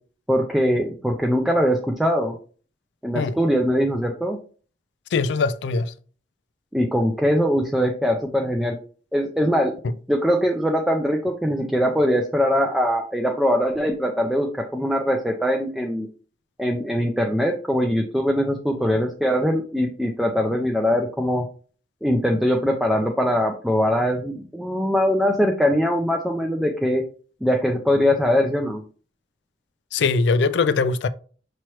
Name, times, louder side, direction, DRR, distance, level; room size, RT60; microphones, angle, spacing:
voice 1, 0.3-2.4 3.0-4.4 6.7-8.7 9.1-9.7 10.1-16.1 16.6-21.4 22.0-27.0 27.4-28.8, equal, ahead, 0.4 m, -22 dB
voice 2, 5.1-5.9 29.9-31.1, left 4 dB, 70° left, 0.3 m, -21 dB
5.8 x 3.1 x 2.9 m
head